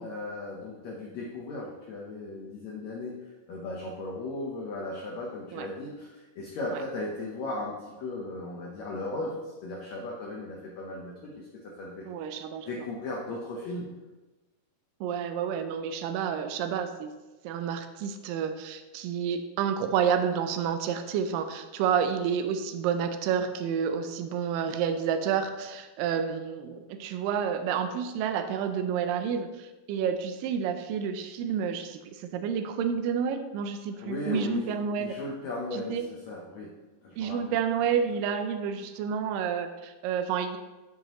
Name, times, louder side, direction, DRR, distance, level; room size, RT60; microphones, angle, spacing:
voice 1, 0.0-3.2 3.5-12.1 12.6-13.9 33.9-36.7 37.0-37.5, left 2 dB, 70° left, -3 dB, 1.7 m, -36 dB
voice 2, 12.1-12.7 15.0-17.1 17.4-35.2 35.7-36.1 37.2-40.6, right 7 dB, 80° right, 8 dB, 2.1 m, -29 dB
12.0 x 5.3 x 3.0 m, 1.2 s
omnidirectional pair, 4.4 m